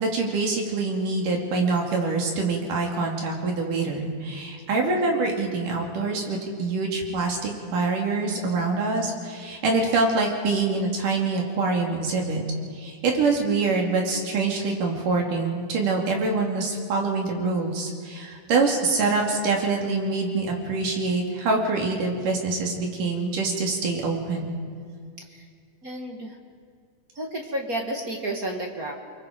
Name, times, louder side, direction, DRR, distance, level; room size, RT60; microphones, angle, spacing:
voice 1, 0.0-12.4 12.7-24.6, right 3 dB, 75° right, 1 dB, 4.2 m, -25 dB
voice 2, 25.8-26.4 27.1-28.9, right 1 dB, 40° right, 1 dB, 1.3 m, -31 dB
29.5 x 22.0 x 5.2 m, 2.1 s
omnidirectional pair, 3.8 m